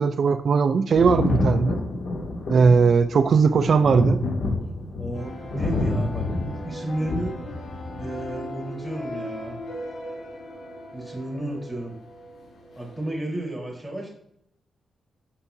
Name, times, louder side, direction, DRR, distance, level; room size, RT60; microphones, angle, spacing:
voice 1, 0.0-1.8 2.5-4.2, right 5 dB, 55° right, 10 dB, 0.5 m, -19 dB
Thunder, 0.9-8.3 9.4-9.5, left 2 dB, 70° left, 2.7 m, -28 dB
voice 2, 5.0-7.3 8.0-9.6 10.9-11.9 12.8-14.1, right 1 dB, ahead, -3 dB, 4.0 m, -32 dB
sound 1, 5.1-13.1, equal, 85° left, 3.9 m, -39 dB
16.5 x 5.8 x 2.8 m, 0.72 s
wide cardioid pair, 145°, 0 cm